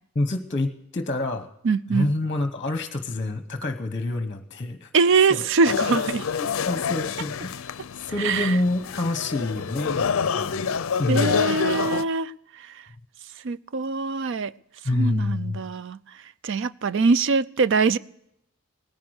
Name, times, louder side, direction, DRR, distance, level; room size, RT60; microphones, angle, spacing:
voice 1, 0.1-1.5 1.9-4.9 5.3-5.4 6.4-11.4 14.8-15.6, left 2 dB, 30° left, 0.9 m, -27 dB
voice 2, 1.6-2.1 4.9-6.3 8.2-8.6 11.1-12.3 13.4-14.5 14.9-16.0 16.4-18.0, right 4 dB, 60° right, 0.5 m, -23 dB
sound 1, 5.6-12.0, left 6 dB, 70° left, 0.5 m, -27 dB
18.5 x 10.5 x 6.4 m
head